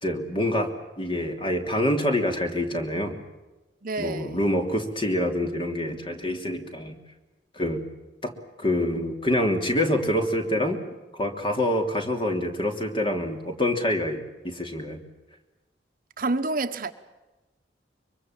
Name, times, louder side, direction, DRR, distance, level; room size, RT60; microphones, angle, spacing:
voice 1, 0.0-0.7 1.0-3.2 4.0-7.0 7.6-7.8 8.2-8.3 8.6-10.8 11.1-15.0, left 1 dB, 30° left, 3.0 m, -26 dB
voice 2, 3.8-4.4 16.2-16.9, right 3 dB, 50° right, 1.2 m, -28 dB
24.0 x 24.0 x 7.4 m
head